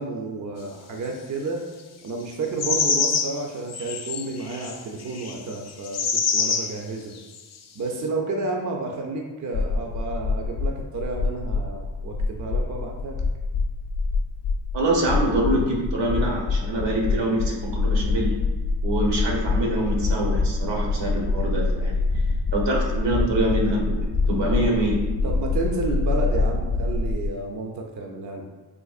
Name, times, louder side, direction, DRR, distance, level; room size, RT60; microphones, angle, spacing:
voice 1, 0.0-1.6 2.0-7.2 7.8-13.2 24.5-24.6 25.2-28.4, right 3 dB, 45° right, 1 dB, 0.6 m, -31 dB
sound 1, 2.6-3.4 3.7-6.8 7.4-7.5, left 5 dB, 40° left, 0.5 m, -25 dB
sound 2, 9.5-27.3, left 3 dB, 90° left, 0.6 m, -25 dB
voice 2, 14.7-18.3 18.8-22.0 22.5-23.8 24.3-25.0, right 1 dB, 75° right, -2 dB, 1.0 m, -25 dB
3.8 x 2.8 x 2.4 m, 1.2 s
cardioid pair, 60°, 43 cm